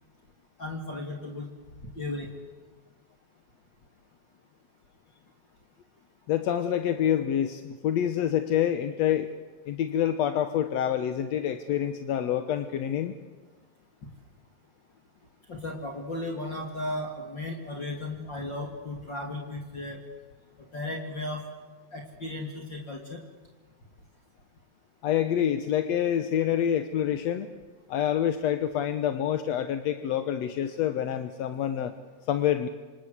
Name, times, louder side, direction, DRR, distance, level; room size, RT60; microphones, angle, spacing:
voice 1, 0.6-1.5 2.0-2.3 15.5-20.0 20.6-21.5 21.9-23.2, left 1 dB, 35° left, 2 dB, 3.0 m, -35 dB
voice 2, 6.3-9.3 9.7-13.2 25.0-27.5 27.9-31.9 32.3-32.7, left 10 dB, 65° left, 10 dB, 1.9 m, -27 dB
27.0 x 26.5 x 8.2 m, 1.4 s
omnidirectional pair, 4.1 m